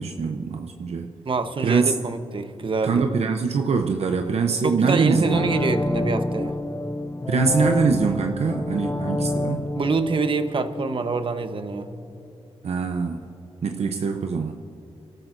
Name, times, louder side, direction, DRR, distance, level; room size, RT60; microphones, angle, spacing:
voice 1, 0.0-1.1 1.6-1.9 2.8-5.5 7.3-9.7 12.6-13.2 13.6-14.6, right 5 dB, 70° right, 4 dB, 0.7 m, -23 dB
voice 2, 1.2-3.0 4.6-6.6 9.7-11.9, right 4 dB, 50° right, 8 dB, 1.0 m, -25 dB
sound 1, 5.0-11.8 12.1-12.2, left 1 dB, 20° left, 0.6 m, -28 dB
28.5 x 13.0 x 2.6 m, 2.9 s
cardioid pair, 60°, 11 cm